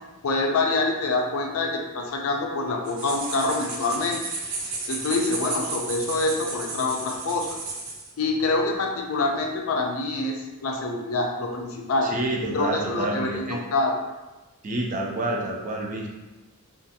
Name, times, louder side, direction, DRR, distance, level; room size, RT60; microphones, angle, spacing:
voice 1, 0.2-4.2 4.9-7.5 8.2-12.1 12.5-13.9, left 3 dB, 75° left, 1 dB, 0.4 m, -26 dB
sound 1, 2.8-8.1, right 3 dB, 75° right, 0.7 m, -33 dB
voice 2, 12.0-13.6 14.6-16.1, right 2 dB, 35° right, 0 dB, 0.4 m, -28 dB
2.5 x 2.5 x 2.6 m, 1.1 s
head